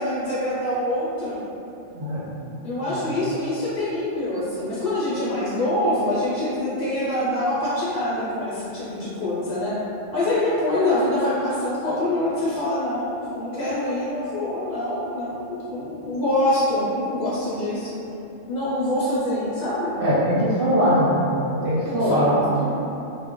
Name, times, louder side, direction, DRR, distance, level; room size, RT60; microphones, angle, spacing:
voice 1, 0.0-1.4 2.6-9.8 10.1-17.9 18.5-20.0 21.8-22.7, left 1 dB, 50° left, -9 dB, 0.6 m, -25 dB
voice 2, 20.0-21.2 21.6-22.3, equal, 55° right, -12 dB, 0.7 m, -21 dB
2.3 x 2.1 x 3.5 m, 2.8 s
omnidirectional pair, 1.3 m